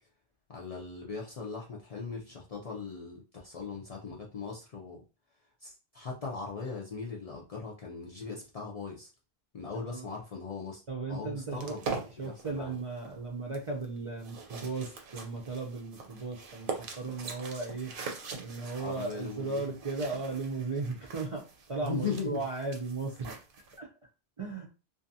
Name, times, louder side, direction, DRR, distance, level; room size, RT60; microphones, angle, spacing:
voice 1, 0.5-5.0 5.6-9.1 9.5-10.8 11.1-11.8 12.2-12.8 18.8-19.8 21.8-22.4, left 5 dB, 50° left, -1 dB, 0.4 m, -39 dB
voice 2, 9.7-10.1 10.9-17.9 18.4-23.3 23.8-23.9 24.4-24.7, right 3 dB, 45° right, -1 dB, 0.4 m, -36 dB
sound 1, 11.5-23.8, right 5 dB, 65° right, 0.8 m, -43 dB
2.6 x 2.3 x 2.6 m, 0.32 s
omnidirectional pair, 1.0 m